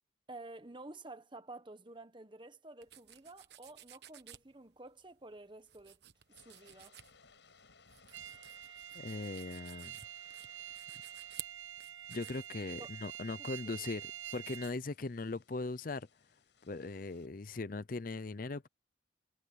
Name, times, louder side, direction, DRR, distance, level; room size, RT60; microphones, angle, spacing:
voice 1, 0.3-6.0 6.3-7.0 12.8-12.9 13.4-13.8, right 2 dB, 25° right, 1.2 m, -51 dB
sound 1, 2.8-14.7, right 12 dB, 60° right, 1.3 m, -55 dB
sound 2, 6.1-17.3, left 5 dB, 70° left, 6.7 m, -66 dB
sound 3, 8.1-14.7, right 11 dB, 85° right, 1.0 m, -47 dB
voice 2, 8.9-9.9 12.1-16.1 16.6-18.7, left 3 dB, 45° left, 0.6 m, -39 dB
head